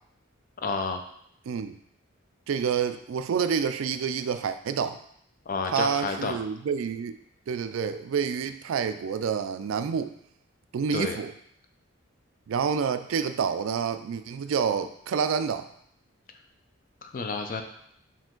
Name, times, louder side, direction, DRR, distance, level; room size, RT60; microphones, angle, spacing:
voice 1, 0.6-1.0 5.5-6.4 10.9-11.2 17.0-17.6, left 4 dB, 45° left, 5 dB, 0.4 m, -30 dB
voice 2, 1.5-1.8 2.5-5.0 5.7-7.2 7.5-10.1 10.7-11.3 12.5-15.7, right 6 dB, 80° right, 10 dB, 0.3 m, -28 dB
4.9 x 2.9 x 3.7 m, 0.68 s
head